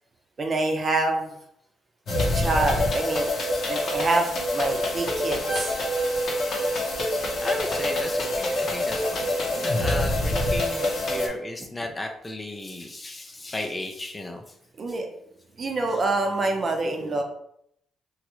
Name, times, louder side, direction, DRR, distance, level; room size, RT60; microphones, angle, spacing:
voice 1, 0.4-1.3 2.3-3.3 3.7-5.7 14.8-15.1 15.6-17.2, right 2 dB, 40° right, 3 dB, 0.6 m, -26 dB
sound 1, 2.1-11.3, left 1 dB, 60° left, 0.7 m, -26 dB
Keyboard (musical), 5.5-8.0, right 1 dB, 85° left, 1.1 m, -40 dB
voice 2, 7.4-14.4, left 1 dB, 20° left, 3 dB, 0.4 m, -35 dB
3.0 x 2.4 x 3.0 m, 0.73 s
cardioid pair, 90°, 0 cm